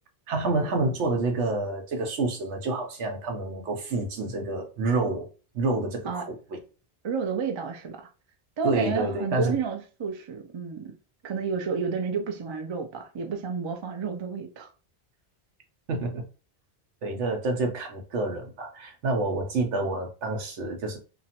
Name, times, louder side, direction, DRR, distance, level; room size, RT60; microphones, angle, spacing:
voice 1, 0.3-5.3 5.5-6.6 8.6-9.6 15.9-16.2 17.0-21.0, right 2 dB, 90° right, 1.1 m, -28 dB
voice 2, 7.0-8.1 8.6-10.9 11.2-14.7, right 5 dB, 50° right, 0.3 m, -31 dB
3.0 x 2.4 x 2.8 m
omnidirectional pair, 1.2 m